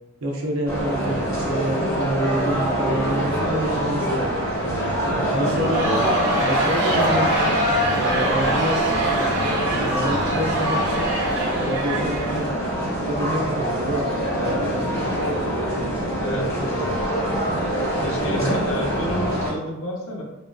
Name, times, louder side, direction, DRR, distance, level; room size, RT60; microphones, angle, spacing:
voice 1, 0.2-4.7 5.0-5.9 6.4-7.3 7.9-9.2 9.6-15.5 16.5-16.9 18.2-18.6, right 1 dB, 90° right, 0 dB, 0.7 m, -29 dB
sound 1, 0.7-19.5, right 1 dB, 20° left, 1.2 m, -25 dB
voice 2, 5.1-5.6 16.2-16.5 18.0-20.2, equal, 75° left, -1 dB, 0.7 m, -30 dB
Crowd, 5.5-12.8, equal, 60° right, 0.8 m, -24 dB
3.5 x 2.2 x 2.5 m, 1.0 s
head